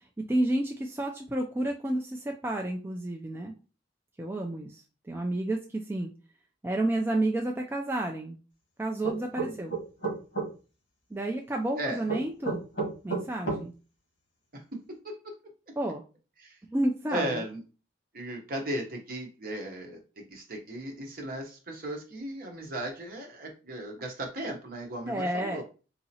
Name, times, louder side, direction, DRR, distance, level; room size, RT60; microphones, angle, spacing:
voice 1, 0.0-3.5 4.2-4.8 5.1-6.1 6.6-8.4 8.8-9.8 11.1-12.6 13.0-13.7 15.8-16.0 16.7-17.4 25.1-25.6, right 1 dB, 10° right, 1 dB, 0.3 m, -30 dB
sound 1, 9.0-10.5 12.1-13.6, right 4 dB, 70° left, 1.6 m, -31 dB
voice 2, 9.3-9.7 11.8-12.0 14.5-15.3 16.4-16.5 17.1-17.6 18.1-25.6, right 1 dB, 50° right, 2 dB, 0.9 m, -36 dB
4.0 x 2.8 x 2.7 m, 0.34 s
head